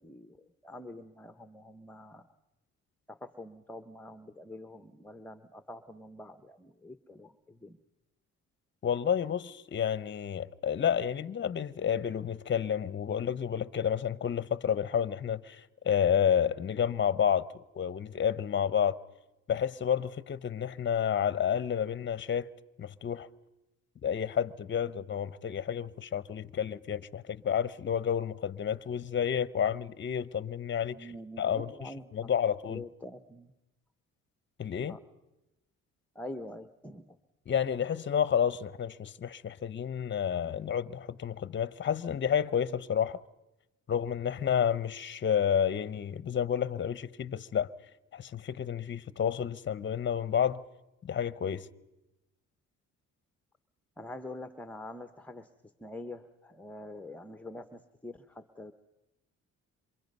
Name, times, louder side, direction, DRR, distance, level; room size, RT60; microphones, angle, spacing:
voice 1, 0.0-2.3 3.1-7.8 24.9-25.1 30.9-32.3 32.7-33.5 34.9-35.0 36.1-37.2 54.0-58.7, left 1 dB, 5° left, 0.9 m, -45 dB
voice 2, 8.8-17.5 17.7-19.0 19.5-22.5 22.8-23.3 24.0-31.1 31.4-31.7 32.1-32.8 34.6-35.0 37.5-43.2 43.9-47.7 48.1-50.6 51.0-51.7, left 8 dB, 40° left, 0.8 m, -30 dB
27.5 x 24.5 x 5.4 m
cardioid pair, 90°, 30 cm